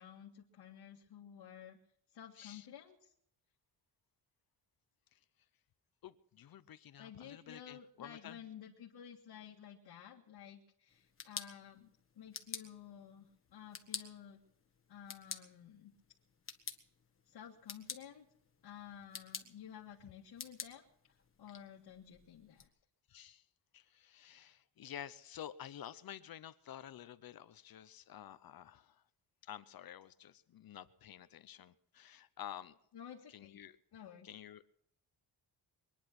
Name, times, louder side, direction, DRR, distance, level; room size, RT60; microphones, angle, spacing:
voice 1, 0.0-1.8 2.1-3.1 7.0-14.4 14.9-15.9 17.3-18.3 18.6-22.7 32.9-33.6 33.9-34.3, left 9 dB, 70° left, -3 dB, 2.0 m, -53 dB
voice 2, 2.4-2.7 5.1-5.2 6.0-8.4 23.1-23.4 23.7-29.0 29.4-32.8 33.3-33.8 34.0-34.8, left 10 dB, 55° left, 14 dB, 0.8 m, -51 dB
sound 1, 10.9-22.7, left 5 dB, 30° left, 1.4 m, -50 dB
23.0 x 10.0 x 6.0 m, 0.70 s
wide cardioid pair, 155°, 42 cm